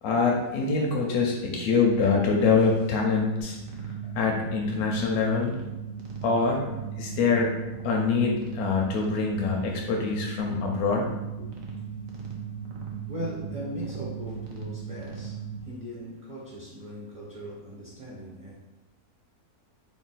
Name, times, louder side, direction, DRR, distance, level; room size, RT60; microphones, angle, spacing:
voice 1, 0.0-3.6 4.1-5.5 6.2-6.6 7.0-7.5 7.8-11.1, left 4 dB, 80° left, 0 dB, 1.1 m, -24 dB
sound 1, 3.4-15.6, right 6 dB, 70° right, 1.1 m, -37 dB
voice 2, 13.1-18.5, equal, 30° right, -6 dB, 0.7 m, -39 dB
3.7 x 2.2 x 3.9 m, 1.0 s
omnidirectional pair, 1.6 m